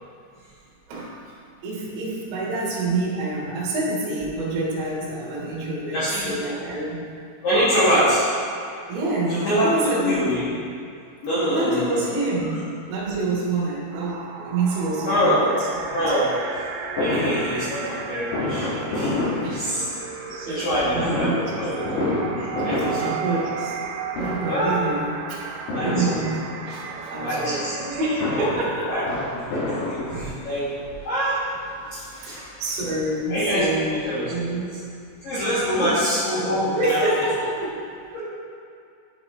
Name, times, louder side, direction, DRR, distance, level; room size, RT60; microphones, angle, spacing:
voice 1, 1.6-6.0 6.2-7.1 7.9-8.1 8.9-10.5 11.5-15.3 15.8-16.3 19.4-19.6 19.9-20.7 20.9-21.6 23.0-23.8 24.2-25.5 25.8-26.4 26.7-29.0 30.1-30.3 32.0-34.0 34.3-34.7 35.7-36.0 36.7-37.8, right 2 dB, 65° right, -6 dB, 3.1 m, -27 dB
voice 2, 5.9-6.6 7.4-8.2 9.3-10.4 11.2-12.2 15.1-15.4 15.9-16.3 17.0-19.8 20.5-22.1 22.3-23.4 24.5-24.8 25.7-26.1 27.1-28.0 28.6-29.1 29.3-30.7 31.0-31.4 31.9-32.4 33.3-33.6 34.0-34.3 35.2-37.1 38.1-38.2, equal, 60° left, -12 dB, 2.5 m, -25 dB
sound 1, 13.9-28.5, right 6 dB, 85° right, 3.2 m, -35 dB
Fireworks, 17.0-20.2 20.9-23.9 24.1-24.7 25.7-26.8 27.9-30.6 31.4-31.5 31.7-31.8 32.2-33.4 33.7-33.8 34.0-34.1, left 1 dB, 80° left, 4.4 m, -28 dB
11.5 x 4.9 x 3.1 m, 2.4 s
omnidirectional pair, 5.9 m